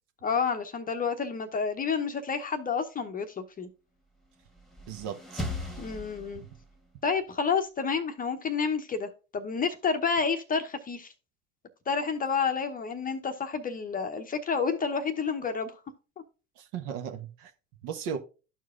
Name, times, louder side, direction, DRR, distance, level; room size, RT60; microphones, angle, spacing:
voice 1, 0.2-3.7 5.8-6.4 7.0-11.1 11.9-15.8, left 5 dB, 20° left, 0.8 m, -29 dB
sound 1, 4.4-6.8, left 1 dB, ahead, 1.5 m, -38 dB
voice 2, 4.9-5.4 16.6-17.5 17.8-18.2, right 8 dB, 50° right, 1.0 m, -36 dB
12.5 x 4.7 x 2.4 m
hypercardioid pair, 85°, 39 cm